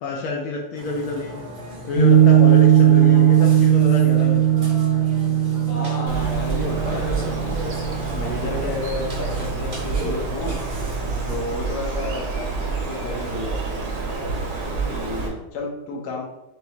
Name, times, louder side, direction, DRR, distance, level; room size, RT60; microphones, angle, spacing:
voice 1, 0.0-1.4 1.9-4.5, left 1 dB, 75° left, -1 dB, 1.4 m, -27 dB
Burping eructation, 0.8-11.3, equal, 35° right, 0.9 m, -34 dB
Piano, 1.9-8.6, right 10 dB, 85° right, 2.6 m, -17 dB
voice 2, 5.7-7.4 8.1-10.6 11.2-13.8 14.8-16.2, left 2 dB, 60° left, -1 dB, 1.3 m, -32 dB
Bird, 6.1-15.3, right 4 dB, 70° right, 1.6 m, -28 dB
6.4 x 2.2 x 2.9 m, 0.95 s
omnidirectional pair, 2.4 m